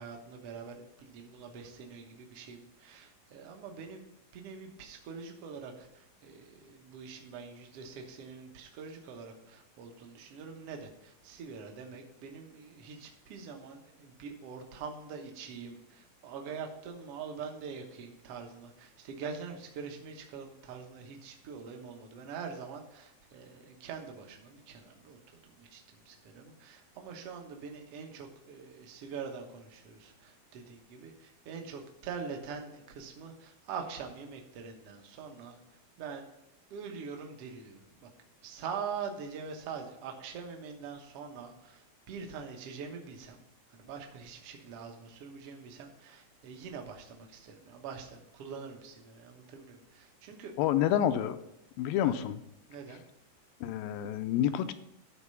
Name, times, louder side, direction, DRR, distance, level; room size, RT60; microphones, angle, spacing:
voice 1, 0.0-4.1 4.3-35.6 36.0-36.3 36.7-38.1 38.4-43.4 43.7-50.5 52.0-52.1 52.7-53.0, right 6 dB, 60° right, 3 dB, 1.6 m, -44 dB
voice 2, 50.6-51.4 51.8-52.4 53.6-54.7, left 11 dB, 80° left, 10 dB, 2.3 m, -28 dB
11.5 x 4.4 x 5.6 m, 0.87 s
omnidirectional pair, 4.1 m